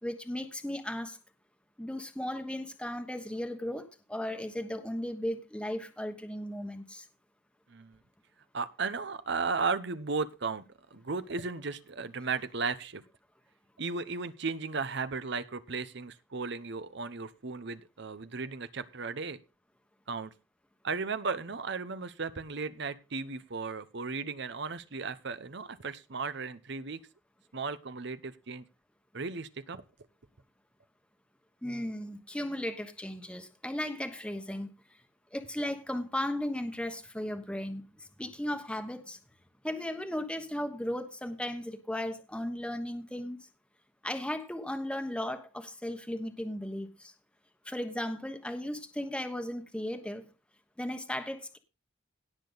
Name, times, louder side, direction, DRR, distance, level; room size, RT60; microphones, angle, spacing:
voice 1, 0.0-1.2 1.8-7.0 31.6-34.7 35.3-39.2 39.6-43.4 44.0-47.1 47.7-50.2 50.8-51.6, left 1 dB, 5° left, 6 dB, 1.2 m, -36 dB
voice 2, 8.5-10.6 10.9-13.0 13.8-19.4 20.1-20.3 20.8-27.0 27.5-28.7 29.1-29.8, right 4 dB, 65° right, 13 dB, 0.9 m, -35 dB
17.5 x 6.8 x 4.0 m, 0.29 s
head